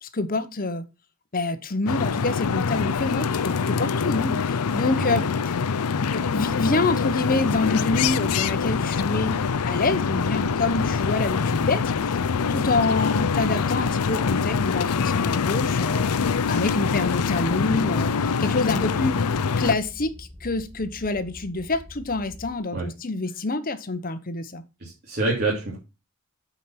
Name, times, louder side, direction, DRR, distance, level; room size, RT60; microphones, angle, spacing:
voice 1, 0.0-0.9 1.3-5.6 6.0-9.4 9.7-12.2 12.5-19.3 19.6-24.6, left 3 dB, 40° left, 0.9 m, -27 dB
sound 1, 1.9-19.8, left 5 dB, 90° left, 0.5 m, -24 dB
sound 2, 7.9-22.6, left 1 dB, 15° right, 3.6 m, -43 dB
voice 2, 24.8-25.8, right 2 dB, 45° right, 3.0 m, -27 dB
8.7 x 5.2 x 5.9 m
head